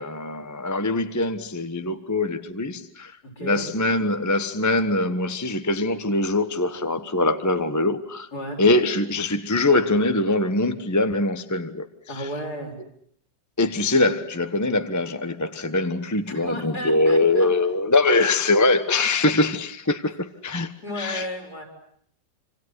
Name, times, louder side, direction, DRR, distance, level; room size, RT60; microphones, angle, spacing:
voice 1, 0.0-8.3 8.6-12.3 13.6-21.3, left 2 dB, 10° left, 1.0 m, -23 dB
voice 2, 3.2-3.7 8.3-8.6 12.1-12.8 16.3-17.5 20.8-21.6, equal, 60° left, 6.9 m, -33 dB
27.0 x 26.5 x 8.2 m
omnidirectional pair, 1.9 m